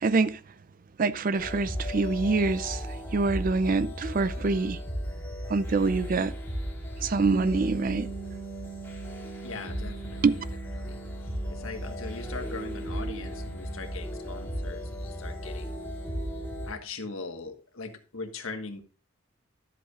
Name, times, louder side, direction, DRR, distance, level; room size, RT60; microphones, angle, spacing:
voice 1, 0.0-0.4 1.0-2.8 3.1-4.8 5.5-6.3 7.0-8.1 10.2-10.3, right 3 dB, 40° right, 0.4 m, -25 dB
sound 1, 1.3-16.7, equal, 10° left, 2.6 m, -36 dB
Bass guitar, 7.2-16.8, right 6 dB, 80° right, 2.4 m, -44 dB
voice 2, 9.4-10.3 10.8-11.0 11.5-15.7 16.6-18.8, left 4 dB, 85° left, 1.5 m, -40 dB
12.5 x 8.0 x 2.4 m
head